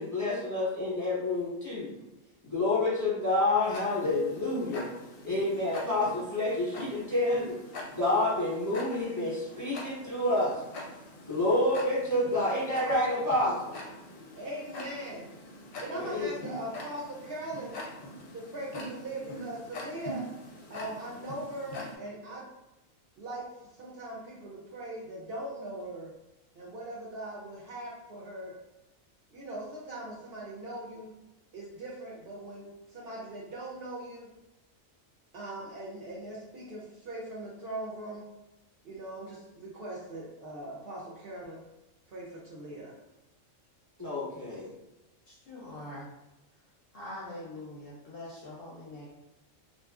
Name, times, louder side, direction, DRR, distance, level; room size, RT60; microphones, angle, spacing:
voice 1, 0.0-1.9 2.4-4.9 5.2-7.6 7.9-10.6 11.2-13.7 15.9-16.3 44.0-44.7, left 2 dB, 15° right, -8 dB, 0.7 m, -28 dB
Tick-tock, 3.6-22.0, left 1 dB, 90° left, 1.0 m, -44 dB
voice 2, 14.3-15.3 15.8-17.8 18.3-20.2 20.7-22.5 23.2-26.1 26.5-28.5 29.3-31.1 31.5-34.3 35.3-38.2 38.8-41.6 42.1-42.9, right 1 dB, 60° right, -5 dB, 0.7 m, -40 dB
voice 3, 45.3-46.1 46.9-49.1, left 1 dB, 60° left, -5 dB, 0.6 m, -43 dB
2.6 x 2.3 x 2.3 m, 0.99 s
omnidirectional pair, 1.4 m